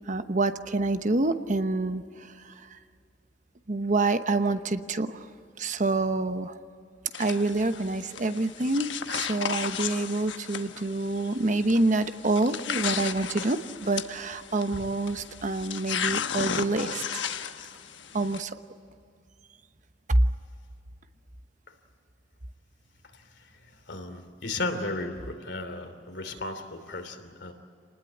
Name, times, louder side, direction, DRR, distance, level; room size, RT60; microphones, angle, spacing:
voice 1, 0.1-2.8 3.7-5.3 5.6-6.6 7.2-17.2 18.1-18.6 20.1-20.2, right 2 dB, 45° right, 9 dB, 1.0 m, -27 dB
sound 1, 7.1-18.4, left 7 dB, 85° left, 1.1 m, -35 dB
voice 2, 23.9-27.5, left 2 dB, 65° left, 7 dB, 3.0 m, -35 dB
28.0 x 20.0 x 9.3 m, 2.3 s
head